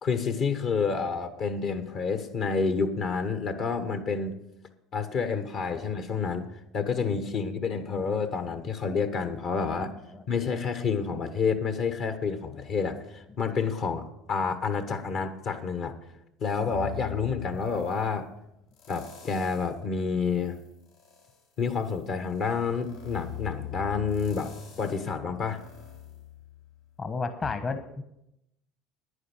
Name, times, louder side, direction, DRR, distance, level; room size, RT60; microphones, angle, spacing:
voice 1, 0.0-4.4 4.9-6.5 6.7-9.9 10.3-16.0 16.4-18.3 18.9-20.6 21.6-24.5 24.8-25.6, left 5 dB, 55° left, 8 dB, 1.2 m, -29 dB
sound 1, 16.7-18.1 18.7-19.8 20.3-27.0 27.4-27.5, left 12 dB, 75° left, 4.1 m, -42 dB
voice 2, 27.0-28.0, left 4 dB, 35° left, 9 dB, 1.2 m, -32 dB
9.9 x 9.7 x 6.2 m, 0.83 s
hypercardioid pair, 70°, 0 cm